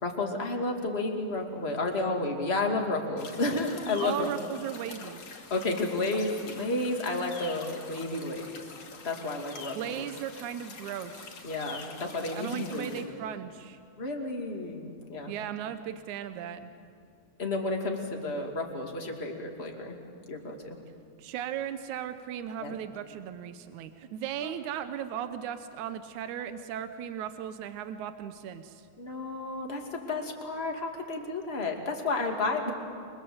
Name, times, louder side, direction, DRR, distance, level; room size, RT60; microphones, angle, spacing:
voice 1, 0.0-4.3 5.4-8.6 9.0-10.0 11.4-13.0 14.0-15.3 17.4-20.0 20.3-20.8 22.6-22.8 24.4-24.8 29.0-32.7, left 2 dB, 20° left, 1 dB, 2.6 m, -32 dB
sound 1, 3.2-13.1, left 4 dB, 55° left, 3.3 m, -46 dB
voice 2, 4.0-5.2 9.7-11.4 12.4-13.8 15.3-16.7 21.2-28.9, right 10 dB, 85° right, 10 dB, 2.4 m, -37 dB
29.0 x 23.5 x 8.0 m, 2.3 s
omnidirectional pair, 3.3 m